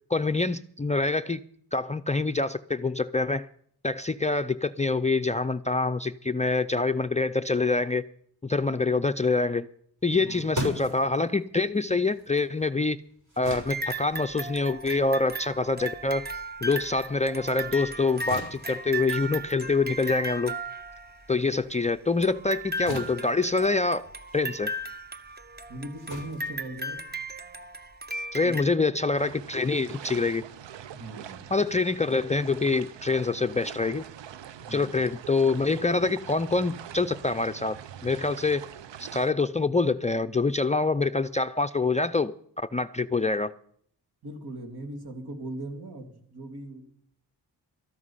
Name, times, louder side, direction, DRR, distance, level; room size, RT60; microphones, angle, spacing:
voice 1, 0.1-1.4 1.7-3.5 3.8-8.0 8.4-9.7 10.0-13.0 13.4-16.3 16.6-20.5 21.3-24.1 24.3-24.7 28.3-30.4 31.5-34.1 34.7-38.7 39.0-43.5, left 3 dB, 15° left, 9 dB, 0.4 m, -26 dB
sound 1, 10.0-16.8 17.2-27.4, equal, 45° right, 6.6 m, -41 dB
voice 2, 10.2-10.9 25.7-27.0 28.4-28.7 30.9-31.5 34.6-35.0 44.2-46.8, right 1 dB, 60° right, 4 dB, 2.8 m, -39 dB
sound 2, 13.4-21.3 22.2-28.6, right 2 dB, 25° right, 1.0 m, -36 dB
sound 3, 29.2-39.3, right 10 dB, 90° right, 0.7 m, -44 dB
13.5 x 11.0 x 5.6 m, 0.62 s
cardioid pair, 65°, 42 cm